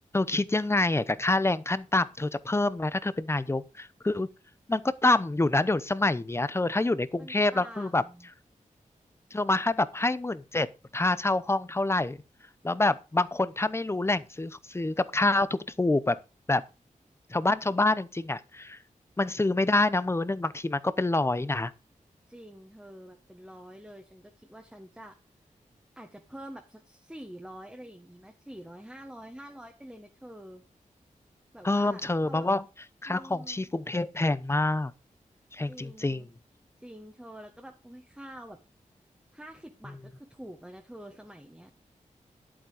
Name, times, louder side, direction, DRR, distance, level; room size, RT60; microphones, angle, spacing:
voice 1, 0.1-4.3 4.7-8.0 9.3-10.7 10.9-12.2 12.6-16.2 16.5-16.6 17.3-18.8 19.2-21.7 31.6-32.6 33.0-34.9 35.5-36.3, left 2 dB, 20° left, 0.8 m, -26 dB
voice 2, 7.2-8.3 22.3-25.2 25.9-30.6 31.5-32.5 33.0-33.7 35.7-36.3 36.8-38.6 39.3-41.7, right 1 dB, 5° right, 1.6 m, -47 dB
11.0 x 8.8 x 5.1 m
wide cardioid pair, 100°, 14 cm